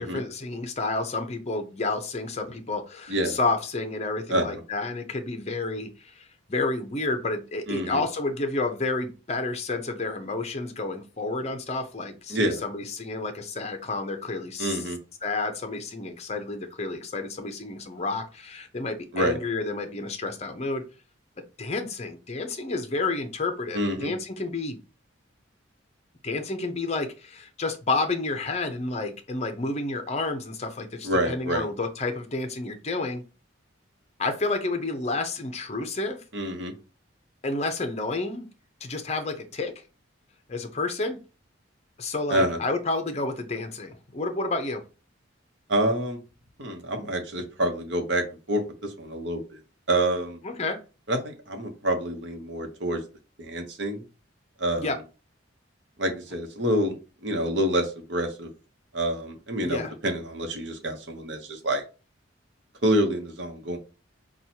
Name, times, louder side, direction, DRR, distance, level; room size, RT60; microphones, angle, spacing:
voice 1, 0.0-14.8 15.2-20.8 21.6-24.8 26.2-33.2 34.2-36.2 37.4-38.5 38.8-39.7 40.5-41.2 42.0-44.8 50.4-50.8 54.8-55.0 59.6-59.9, left 3 dB, 30° left, 0.7 m, -30 dB
voice 2, 4.3-4.6 7.7-8.0 12.3-12.6 14.6-15.0 19.1-19.4 23.7-24.1 31.0-31.7 36.3-36.7 42.3-42.6 45.7-46.2 46.6-49.6 49.9-50.4 51.1-53.0 53.4-54.0 54.6-54.9 56.0-56.9 57.2-58.5 58.9-61.8 62.8-63.8, right 1 dB, 60° right, 1.0 m, -27 dB
5.9 x 2.3 x 2.8 m
head